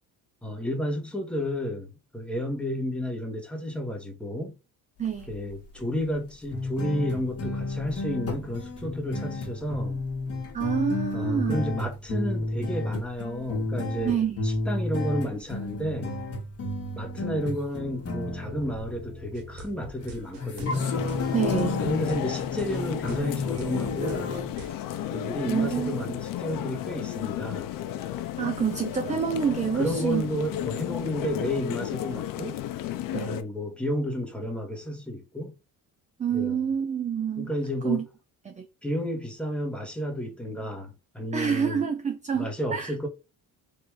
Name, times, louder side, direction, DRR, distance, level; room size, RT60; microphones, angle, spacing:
voice 1, 0.4-4.6 5.3-10.0 11.1-14.1 14.4-16.1 17.0-20.9 21.8-24.4 25.1-27.7 29.7-32.6 33.1-35.5 36.3-36.6 37.4-38.0 38.8-41.9 42.3-43.1, equal, 5° left, 1.1 m, -32 dB
sound 1, 5.2-5.5 5.8-5.9 6.5-24.5, left 2 dB, 40° left, 1.3 m, -31 dB
voice 2, 10.5-11.6 14.0-14.5 21.3-21.8 25.4-26.0 28.4-30.3 33.1-33.4 36.2-37.5 37.8-38.0 38.5-38.7 41.3-42.9, right 7 dB, 20° right, 0.4 m, -27 dB
sound 2, 19.3-24.7, right 2 dB, 60° right, 1.1 m, -44 dB
sound 3, 20.8-33.4, left 12 dB, 60° left, 0.6 m, -33 dB
3.5 x 2.5 x 4.5 m
cardioid pair, 120°, 38 cm